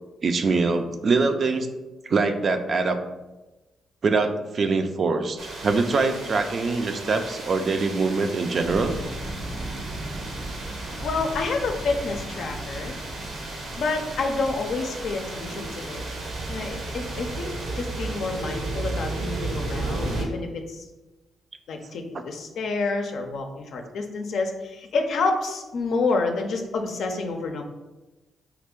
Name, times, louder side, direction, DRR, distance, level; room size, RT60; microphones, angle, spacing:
voice 1, 0.2-1.7 2.1-3.0 4.0-9.0 15.5-15.6, right 4 dB, 55° right, 7 dB, 0.4 m, -23 dB
sound 1, 5.4-20.2, right 2 dB, 80° right, 0.8 m, -33 dB
voice 2, 11.0-13.0 13.8-16.0 16.5-20.8 21.7-27.6, left 3 dB, 70° left, 4 dB, 0.5 m, -28 dB
3.3 x 2.4 x 3.6 m, 1.1 s
supercardioid pair, 50°, 0 cm